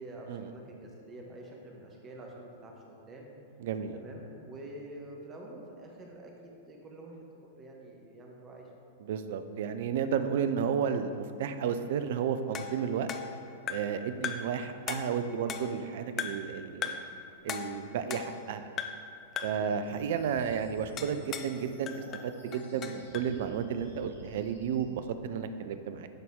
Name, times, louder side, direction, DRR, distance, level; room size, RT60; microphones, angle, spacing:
voice 1, 0.0-3.3 3.9-7.2 7.6-8.7 19.6-19.7, right 1 dB, 25° right, 0 dB, 1.2 m, -47 dB
voice 2, 3.6-4.0 9.0-13.1 13.7-17.0 17.4-18.7 19.4-26.1, right 7 dB, 55° right, 10 dB, 0.4 m, -32 dB
sound 1, 12.5-14.0 14.2-14.6 14.9-15.8 16.2-16.5 16.8-17.1 17.5-18.5 18.8-19.1 19.4-19.7 21.0-21.6 21.9-23.3, left 8 dB, 30° left, 0.4 m, -38 dB
sound 2, 19.9-24.8, equal, 90° left, 1.3 m, -51 dB
10.5 x 4.1 x 3.6 m, 2.5 s
figure-of-eight pair, 95°, 0 cm